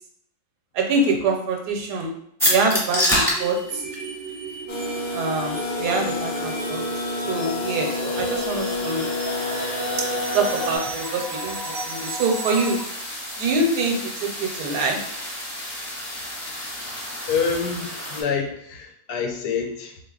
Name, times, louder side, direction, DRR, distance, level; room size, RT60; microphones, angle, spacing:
voice 1, 0.7-2.1 2.4-3.8 5.1-6.8 7.3-9.1 10.3-12.8 13.4-15.0, right 3 dB, 85° right, 2 dB, 1.2 m, -25 dB
sound 1, 2.4-18.2, equal, ahead, 0.7 m, -31 dB
sound 2, 2.9-12.9, right 3 dB, 65° right, 0.6 m, -35 dB
sound 3, 4.7-10.8, left 3 dB, 55° left, 0.6 m, -29 dB
voice 2, 17.3-20.0, left 6 dB, 80° left, 3 dB, 1.1 m, -27 dB
3.8 x 2.7 x 2.3 m, 0.70 s
omnidirectional pair, 1.7 m